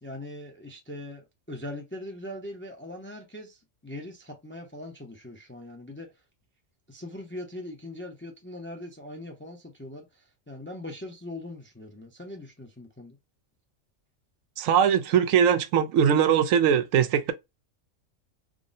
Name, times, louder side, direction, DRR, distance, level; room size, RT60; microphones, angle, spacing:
voice 1, 0.0-6.2 6.9-13.2, left 1 dB, 15° left, 0.5 m, -41 dB
voice 2, 14.6-17.3, right 8 dB, 85° right, 1.0 m, -21 dB
3.7 x 2.0 x 3.8 m
omnidirectional pair, 1.3 m